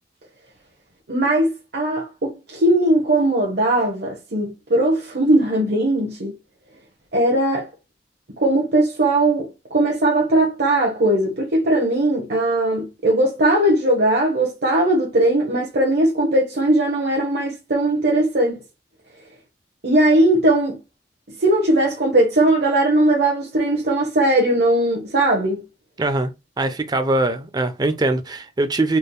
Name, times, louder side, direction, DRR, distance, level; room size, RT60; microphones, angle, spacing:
voice 1, 1.1-6.3 7.1-7.7 8.4-18.6 19.8-20.8 21.4-25.6, right 1 dB, 60° right, 1.1 m, -19 dB
voice 2, 26.0-26.3 26.6-29.0, right 2 dB, 25° right, 0.5 m, -22 dB
4.3 x 3.3 x 2.2 m
head